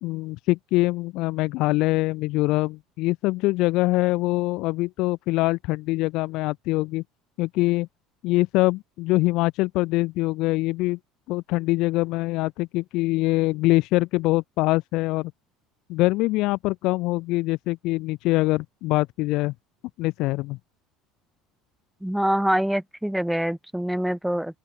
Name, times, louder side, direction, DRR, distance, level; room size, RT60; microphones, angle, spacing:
voice 1, 0.0-7.0 7.4-7.9 8.2-11.0 11.3-15.3 15.9-19.5 20.0-20.6, left 20 dB, 65° left, 2.3 m, -24 dB
voice 2, 22.0-24.6, equal, ahead, 5.0 m, -25 dB
open air
supercardioid pair, 110°, 0 cm